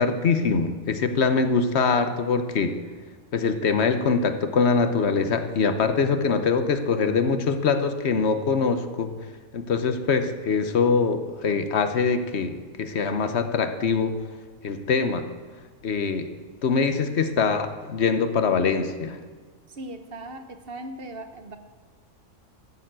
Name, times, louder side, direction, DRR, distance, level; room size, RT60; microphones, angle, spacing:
voice 1, 0.0-2.8 3.3-9.1 9.5-14.2 14.6-15.3 15.8-16.3 16.6-19.2, left 5 dB, 60° left, 9 dB, 1.1 m, -23 dB
voice 2, 19.7-21.6, right 1 dB, 50° right, 8 dB, 1.2 m, -38 dB
14.0 x 6.9 x 7.5 m, 1.5 s
omnidirectional pair, 1.3 m